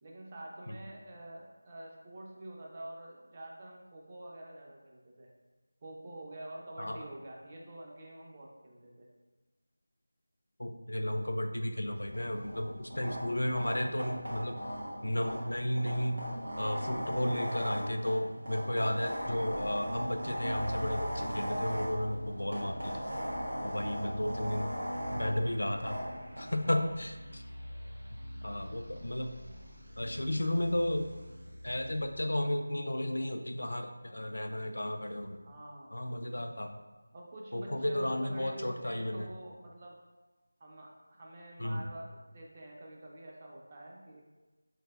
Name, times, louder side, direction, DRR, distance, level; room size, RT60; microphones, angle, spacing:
voice 1, 0.0-5.3 5.8-9.1 26.6-26.9 35.4-35.9 37.1-39.9 40.6-44.2, right 1 dB, 25° right, -2 dB, 0.4 m, -47 dB
voice 2, 10.6-14.6 15.0-16.2 16.6-23.0 23.6-24.7 25.1-26.0 26.4-27.4 28.4-29.3 30.0-31.1 31.6-35.4 35.9-36.8 37.5-39.3 41.6-41.9, left 1 dB, 75° left, 6 dB, 0.3 m, -33 dB
sound 1, 11.9-26.5, equal, 75° right, 1.2 m, -38 dB
sound 2, 19.0-32.2, equal, 55° right, 1.1 m, -46 dB
3.7 x 3.2 x 2.3 m, 1.2 s
figure-of-eight pair, 170°, 0 cm